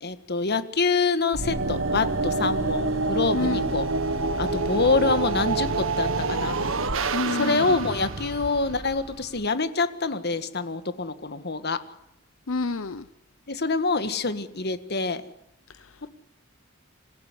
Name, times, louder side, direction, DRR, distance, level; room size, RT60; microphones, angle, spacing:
voice 1, 0.0-3.9 4.4-6.6 7.3-11.8 13.5-15.2, left 3 dB, 55° left, 11 dB, 1.7 m, -26 dB
sound 1, 1.3-9.4, right 3 dB, 70° right, 1.7 m, -27 dB
voice 2, 3.3-3.7 7.1-7.7 12.5-13.0, left 3 dB, 80° left, 13 dB, 0.9 m, -28 dB
27.0 x 16.0 x 9.8 m, 0.83 s
head